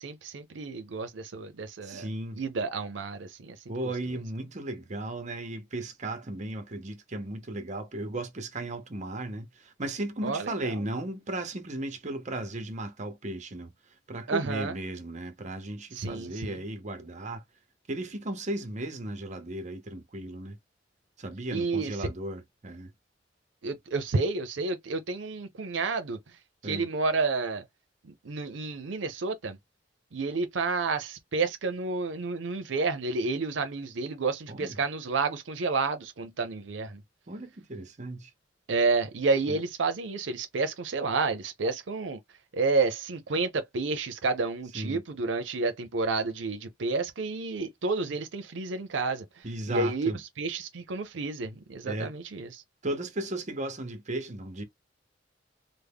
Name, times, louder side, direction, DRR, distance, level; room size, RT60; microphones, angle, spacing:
voice 1, 0.0-2.1 2.4-3.6 10.2-10.8 14.3-14.7 15.9-16.6 21.5-22.1 23.6-26.2 26.6-27.6 28.0-29.6 30.1-37.0 38.7-42.2 42.5-49.3 49.7-50.1 50.4-52.6, right 3 dB, 85° right, 0.6 m, -30 dB
voice 2, 1.8-2.4 3.7-13.7 14.1-17.4 17.9-20.6 21.2-22.9 26.6-26.9 34.5-34.8 37.3-38.3 39.5-39.6 44.7-45.0 49.4-50.2 51.9-52.1 52.8-54.6, right 1 dB, 40° right, 0.8 m, -35 dB
3.4 x 2.1 x 3.5 m
head